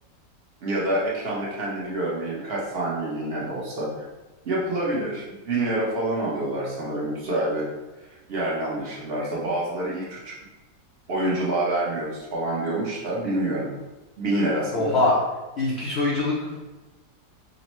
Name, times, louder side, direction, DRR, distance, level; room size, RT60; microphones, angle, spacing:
voice 1, 0.6-4.1 4.4-7.6 8.3-10.3 11.1-13.7 14.2-15.0, right 1 dB, 45° right, -5 dB, 0.9 m, -27 dB
voice 2, 14.7-15.2 15.6-16.7, left 2 dB, 75° left, -4 dB, 0.6 m, -23 dB
5.2 x 2.1 x 3.0 m, 1.1 s
omnidirectional pair, 1.9 m